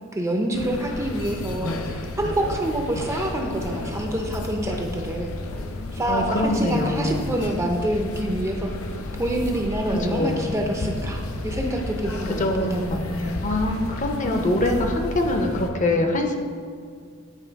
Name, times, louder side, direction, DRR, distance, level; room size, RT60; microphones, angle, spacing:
voice 1, 0.1-5.3 5.9-8.8 9.2-12.8 13.2-13.3, right 1 dB, 15° right, 2 dB, 0.4 m, -27 dB
sound 1, 0.5-15.7, left 2 dB, 85° left, 0.6 m, -32 dB
voice 2, 6.1-7.3 9.9-10.6 12.3-16.4, left 1 dB, 35° left, 4 dB, 0.5 m, -24 dB
9.1 x 3.2 x 4.5 m, 2.1 s
head